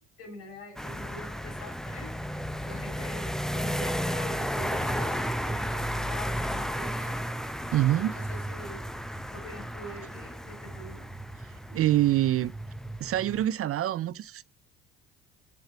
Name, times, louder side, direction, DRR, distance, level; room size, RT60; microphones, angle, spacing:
voice 1, 0.2-2.2 2.6-7.3 8.0-8.9 9.3-11.2, left 1 dB, 75° left, 5.7 m, -45 dB
sound 1, 0.8-13.5, equal, ahead, 0.8 m, -33 dB
voice 2, 7.7-8.1 11.4-12.5 13.0-14.4, right 13 dB, 45° right, 0.6 m, -26 dB
8.3 x 7.9 x 7.1 m
hypercardioid pair, 60°, 33 cm